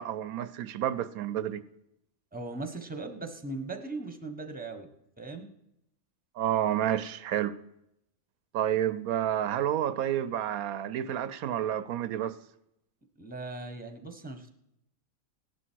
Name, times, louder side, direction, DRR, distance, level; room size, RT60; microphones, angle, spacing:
voice 1, 0.0-1.6 6.4-7.6 8.5-12.4, right 11 dB, 90° right, 1.2 m, -30 dB
voice 2, 2.3-4.9 5.2-5.5 13.2-14.5, right 3 dB, 5° right, 1.2 m, -39 dB
17.0 x 10.5 x 4.6 m
omnidirectional pair, 1.5 m